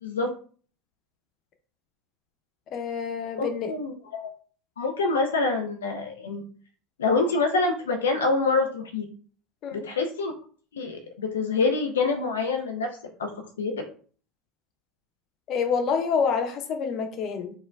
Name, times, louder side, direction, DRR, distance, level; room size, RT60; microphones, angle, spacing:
voice 1, 2.7-3.7 9.6-9.8 15.5-17.5, left 6 dB, 50° left, 5 dB, 0.7 m, -27 dB
voice 2, 3.4-4.3 4.8-6.4 7.0-9.1 9.7-10.3 10.7-13.3 13.6-13.8, left 3 dB, 85° left, 4 dB, 0.4 m, -26 dB
4.5 x 2.1 x 2.3 m, 0.43 s
hypercardioid pair, 75°, 0 cm